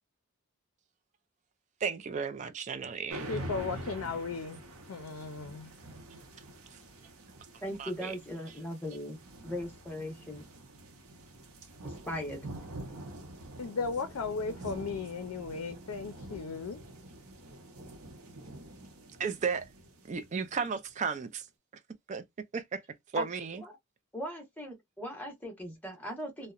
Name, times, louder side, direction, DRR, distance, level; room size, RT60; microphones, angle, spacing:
voice 1, 1.8-3.3 7.8-8.1 19.2-19.7 20.1-21.5 22.1-22.2 22.5-22.8 23.1-23.6, right 5 dB, 35° right, 0.3 m, -34 dB
sound 1, 3.1-20.9, right 1 dB, 90° right, 0.7 m, -46 dB
voice 2, 3.2-4.6 4.9-5.7 13.6-16.8, left 4 dB, 85° left, 0.4 m, -36 dB
voice 3, 7.6-10.4 11.8-12.5 23.1-23.2 23.6-23.7 24.1-26.5, equal, 5° left, 1.0 m, -39 dB
2.8 x 2.1 x 2.3 m
head